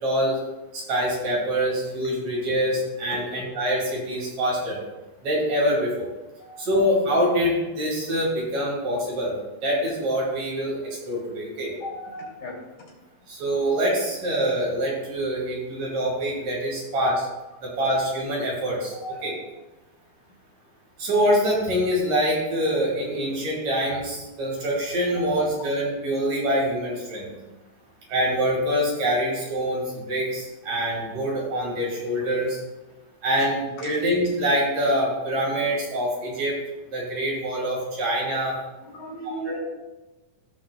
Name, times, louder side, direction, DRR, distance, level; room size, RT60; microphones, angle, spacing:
voice 1, 0.0-0.4 0.7-4.8 5.2-6.1 6.6-11.7 13.3-17.1 17.6-18.9 19.2-19.3 21.0-27.3 28.1-32.6 33.2-36.6 36.9-38.6 39.4-39.6, equal, 50° right, -3 dB, 3.3 m, -25 dB
voice 2, 11.8-12.6 17.1-17.2 19.0-19.4 25.1-25.5 38.8-39.6, equal, 65° left, -4 dB, 4.3 m, -35 dB
16.5 x 5.7 x 2.2 m, 1.1 s
omnidirectional pair, 4.2 m